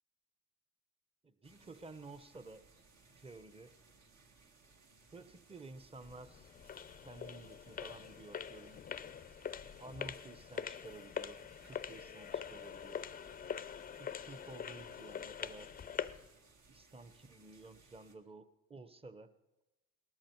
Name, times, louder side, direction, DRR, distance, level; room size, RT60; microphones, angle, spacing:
voice 1, 1.2-2.6 3.2-3.7 5.1-6.5 7.0-8.8 9.8-13.1 13.9-15.8 16.7-19.3, right 3 dB, 20° right, 12 dB, 0.8 m, -53 dB
sound 1, 1.4-18.2, right 4 dB, 65° right, 1.8 m, -65 dB
sound 2, 6.0-16.3, left 8 dB, 30° left, 0.5 m, -44 dB
18.5 x 13.5 x 4.5 m, 1.0 s
cardioid pair, 90°, 30 cm